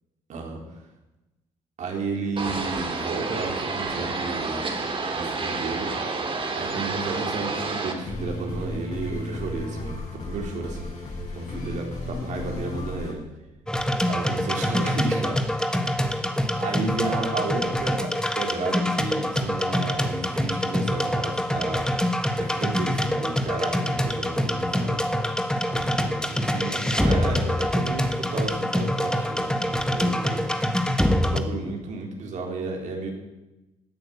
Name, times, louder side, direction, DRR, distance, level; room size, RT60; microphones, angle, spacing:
voice 1, 0.3-0.6 1.8-4.6 5.2-6.0 6.6-10.9 11.3-13.2 14.0-15.6 16.5-21.9 22.3-25.0 25.7-30.5 31.2-33.1, right 3 dB, 65° right, 1 dB, 3.8 m, -32 dB
sound 1, 2.4-7.9, right 3 dB, 40° right, 2.9 m, -29 dB
sound 2, 8.0-13.1, left 2 dB, 60° left, 6.7 m, -34 dB
sound 3, 13.7-31.4, equal, 5° left, 1.5 m, -25 dB
17.0 x 9.0 x 7.0 m, 1.0 s
supercardioid pair, 65°, 13 cm